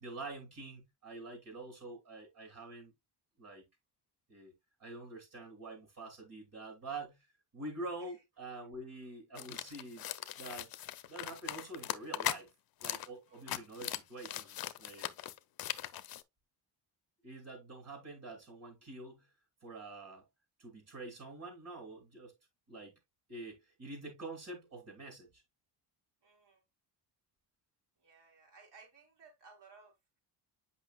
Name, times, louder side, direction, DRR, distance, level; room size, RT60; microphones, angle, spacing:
voice 1, 0.0-2.9 3.4-3.6 4.3-4.5 4.8-7.2 7.5-10.1 10.4-10.7 11.1-12.5 12.8-15.1 17.2-19.3 19.6-20.2 20.6-22.3 22.7-23.0 23.3-25.4, right 2 dB, 45° right, 2.9 m, -46 dB
sound 1, 9.4-12.4 12.8-13.1 13.3-16.2, left 13 dB, 55° left, 0.6 m, -39 dB
voice 2, 26.2-26.6 28.0-30.2, right 4 dB, 65° right, 3.9 m, -60 dB
8.1 x 5.7 x 2.2 m
cardioid pair, 155°, 44 cm